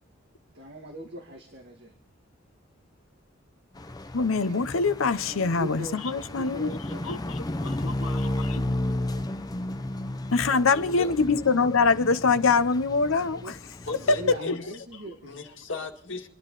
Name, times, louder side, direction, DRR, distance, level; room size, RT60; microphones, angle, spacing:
voice 1, 0.5-1.9 4.5-4.6 5.2-7.2 13.0-15.4, right 1 dB, 55° right, 2.2 m, -41 dB
sound 1, 3.7-14.4, left 1 dB, 20° left, 0.7 m, -33 dB
voice 2, 4.1-6.8 7.0-7.2 7.6-8.7 10.3-13.6 14.5-14.6, left 4 dB, 85° left, 0.8 m, -24 dB
voice 3, 10.7-11.1 13.9-14.6 14.9-16.3, left 3 dB, 60° left, 2.1 m, -37 dB
29.0 x 11.0 x 4.0 m
head